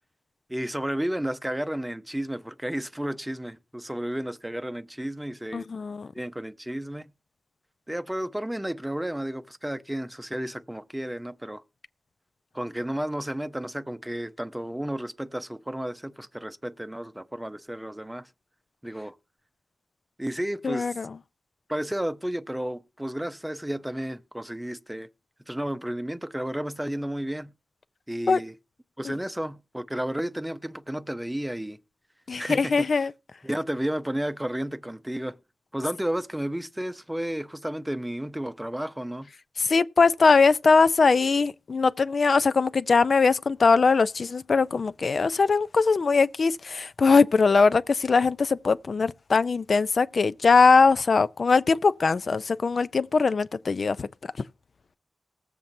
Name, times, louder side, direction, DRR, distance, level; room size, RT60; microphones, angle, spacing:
voice 1, 0.5-5.7 6.1-7.1 7.9-11.6 12.5-18.3 18.8-19.2 20.2-21.0 21.7-25.1 25.5-27.5 28.1-28.5 29.0-31.8 32.4-32.9 33.4-35.4 35.7-39.3, right 1 dB, 10° right, 0.7 m, -32 dB
voice 2, 5.5-6.1 20.6-21.1 28.3-28.4 29.1-29.2 32.3-33.1 39.6-54.1, left 4 dB, 60° left, 0.4 m, -21 dB
20.0 x 7.3 x 2.7 m
cardioid pair, 65°, 0 cm